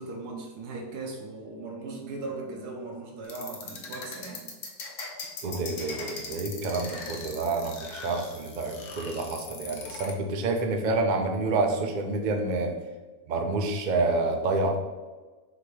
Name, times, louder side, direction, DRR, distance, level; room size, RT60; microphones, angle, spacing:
voice 1, 0.0-4.4, right 3 dB, 90° right, -1 dB, 1.3 m, -38 dB
sound 1, 3.2-10.1, left 4 dB, 60° left, 1.1 m, -39 dB
voice 2, 5.4-12.8 13.3-14.8, right 3 dB, 70° right, 3 dB, 0.4 m, -28 dB
3.9 x 2.9 x 4.6 m, 1.3 s
omnidirectional pair, 1.6 m